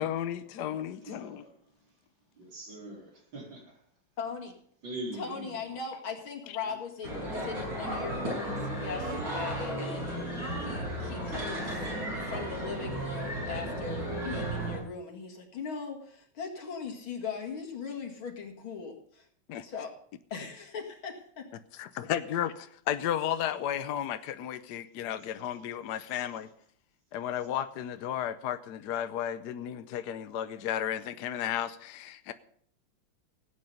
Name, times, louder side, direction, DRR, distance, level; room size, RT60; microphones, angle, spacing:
voice 1, 0.0-1.4 19.5-19.6 21.8-26.5 27.1-32.3, left 10 dB, 65° left, 1.1 m, -33 dB
voice 2, 0.5-1.7 2.3-3.8 4.8-5.8 6.6-6.8 26.1-26.3, right 1 dB, 65° right, 4.9 m, -43 dB
voice 3, 4.2-4.5 5.2-11.9 12.2-19.3 19.6-19.9 20.3-21.5, left 5 dB, 90° left, 2.9 m, -39 dB
sound 1, 7.0-14.8, right 1 dB, 45° right, 7.0 m, -34 dB
17.0 x 8.7 x 5.3 m
omnidirectional pair, 2.2 m